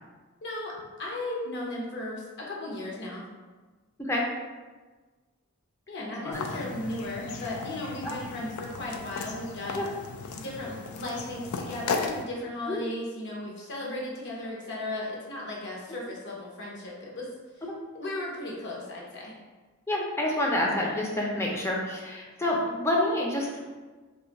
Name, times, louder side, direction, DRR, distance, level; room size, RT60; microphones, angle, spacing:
voice 1, 0.4-3.3 5.9-9.8 10.3-17.3 17.9-19.3, left 1 dB, 55° left, -3 dB, 0.8 m, -36 dB
voice 2, 6.2-6.6 8.0-8.1 9.7-9.9 12.7-12.9 19.9-23.6, left 1 dB, 10° left, -2 dB, 0.5 m, -28 dB
sound 1, 6.3-12.2, left 4 dB, 90° left, 0.3 m, -36 dB
2.5 x 2.3 x 4.0 m, 1.3 s
head